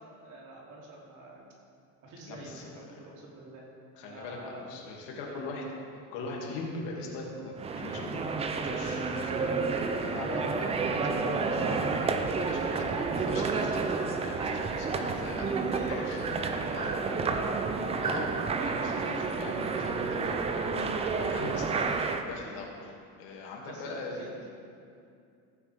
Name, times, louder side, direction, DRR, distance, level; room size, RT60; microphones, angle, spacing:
voice 1, 0.0-1.4 2.0-3.7 4.1-4.7 5.2-5.5 12.7-12.9 15.2-17.9 23.6-24.5, right 1 dB, 55° right, -4 dB, 3.0 m, -47 dB
voice 2, 2.3-2.7 4.0-5.7 6.1-8.3 8.5-15.5 15.9-16.2 16.7-16.9 18.0-24.2, left 3 dB, 75° left, -1 dB, 2.4 m, -41 dB
sound 1, 7.6-22.2, right 4 dB, 15° right, 0.4 m, -30 dB
15.5 x 9.3 x 3.5 m, 2.4 s
cardioid pair, 155°, 37 cm